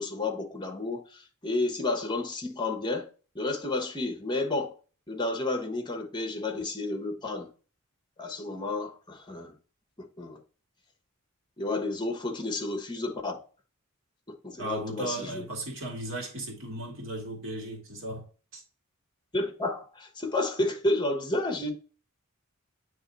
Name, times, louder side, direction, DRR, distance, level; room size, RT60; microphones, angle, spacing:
voice 1, 0.0-3.1 3.3-4.7 5.1-7.5 8.2-9.5 10.0-10.4 11.6-13.5 14.3-15.5 19.3-21.7, left 2 dB, 20° left, 1.0 m, -31 dB
voice 2, 14.6-18.3 18.5-18.6, right 1 dB, 65° right, 2.0 m, -36 dB
8.7 x 3.1 x 4.0 m
head